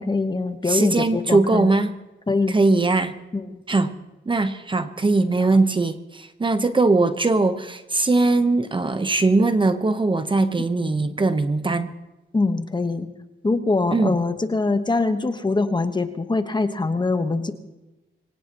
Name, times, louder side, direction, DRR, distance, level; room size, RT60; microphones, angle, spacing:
voice 1, 0.0-1.7 2.3-2.5 3.3-3.6 10.8-11.2 12.3-13.1 13.4-17.5, left 3 dB, 20° left, 8 dB, 1.2 m, -23 dB
voice 2, 0.7-2.0 2.5-3.1 3.7-4.0 4.3-11.9 13.9-14.1, right 3 dB, 25° right, 9 dB, 1.0 m, -20 dB
24.5 x 17.5 x 3.0 m, 1.0 s
cardioid pair, 95°, 21 cm